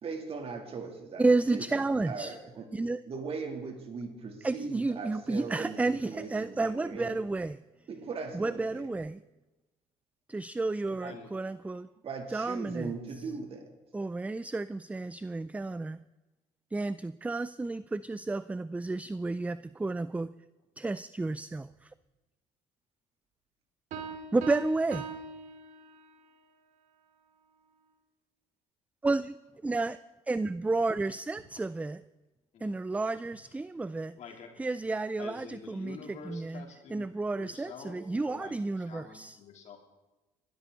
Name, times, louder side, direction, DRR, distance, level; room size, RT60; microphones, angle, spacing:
voice 1, 0.0-1.2 1.5-1.6 2.1-2.7 3.1-5.8 6.1-7.2 7.9-8.9 11.0-11.2 12.0-13.7, right 4 dB, 50° right, 4 dB, 3.0 m, -39 dB
voice 2, 1.2-2.4 2.7-3.0 4.4-7.6 8.3-9.2 10.3-11.9 12.3-13.2 13.9-16.0 16.7-20.3 20.8-21.9 24.3-25.1 29.0-29.4 29.6-30.0 30.3-32.0 32.6-34.1 34.6-36.6 36.9-39.4, right 3 dB, 10° right, 16 dB, 0.4 m, -31 dB
voice 3, 11.0-11.3 31.5-31.6 32.5-32.7 34.2-34.5 35.2-39.8, left 5 dB, 60° left, 2 dB, 3.3 m, -47 dB
sound 1, 23.9-26.3, right 5 dB, 70° right, 2.5 m, -41 dB
21.5 x 12.5 x 4.0 m, 1.1 s
supercardioid pair, 80°, 13 cm